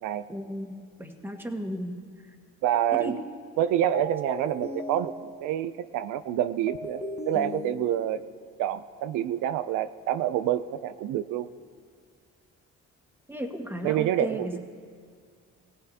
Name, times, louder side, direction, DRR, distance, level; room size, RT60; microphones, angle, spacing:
voice 1, 0.3-2.0 3.0-3.1 13.3-14.6, equal, 5° right, 3 dB, 1.4 m, -34 dB
voice 2, 2.6-3.2 3.6-8.2 8.6-11.5 13.8-14.6, right 11 dB, 90° right, 12 dB, 0.5 m, -27 dB
sound 1, 3.9-5.6 6.7-8.4, left 1 dB, 20° left, 1.0 m, -37 dB
17.5 x 16.5 x 2.8 m, 2.1 s
cardioid pair, 90°, 30 cm